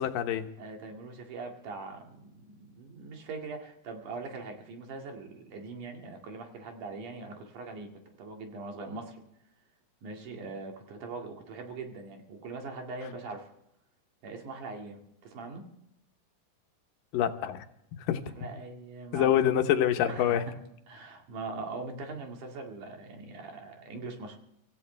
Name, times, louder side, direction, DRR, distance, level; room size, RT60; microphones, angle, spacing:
voice 1, 0.0-0.5 17.1-17.6 18.1-18.2 19.1-20.5, left 10 dB, 85° left, 7 dB, 2.8 m, -26 dB
voice 2, 0.6-7.9 8.2-9.2 10.0-13.5 14.2-15.7 18.4-19.3 20.0-20.6 20.9-24.4, right 3 dB, 70° right, 2 dB, 3.7 m, -41 dB
25.5 x 15.0 x 3.4 m, 0.79 s
omnidirectional pair, 3.8 m